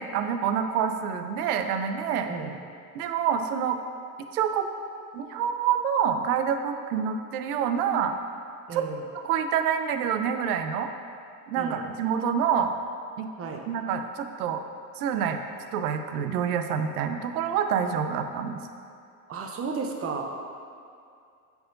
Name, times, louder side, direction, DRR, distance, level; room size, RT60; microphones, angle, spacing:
voice 1, 0.0-2.3 2.9-3.8 4.3-4.7 5.1-8.1 8.7-8.9 9.2-10.9 11.5-12.8 13.2-13.3 13.7-14.6 15.0-15.4 15.7-18.6, right 8 dB, 75° right, 7 dB, 0.6 m, -27 dB
voice 2, 8.7-9.0 11.6-11.8 13.4-13.6 19.3-20.2, right 5 dB, 30° right, 2 dB, 0.7 m, -33 dB
7.6 x 4.7 x 2.6 m, 2.5 s
hypercardioid pair, 90°, 46 cm